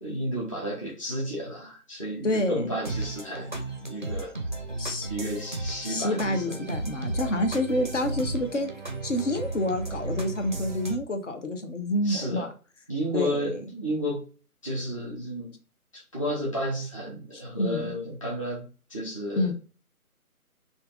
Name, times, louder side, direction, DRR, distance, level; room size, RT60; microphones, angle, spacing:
voice 1, 0.0-4.3 5.1-6.6 12.0-12.5 12.9-14.2 14.6-15.5 15.9-18.6 18.9-19.5, equal, 20° left, 0.6 m, -32 dB
voice 2, 2.2-2.7 4.8-5.1 5.8-8.7 9.0-12.5 13.1-13.6 17.6-17.9 19.4-19.5, left 1 dB, 55° left, 0.9 m, -28 dB
sound 1, 2.8-11.0, right 2 dB, 35° right, 0.5 m, -34 dB
6.5 x 2.6 x 2.3 m
figure-of-eight pair, 160°, 45 cm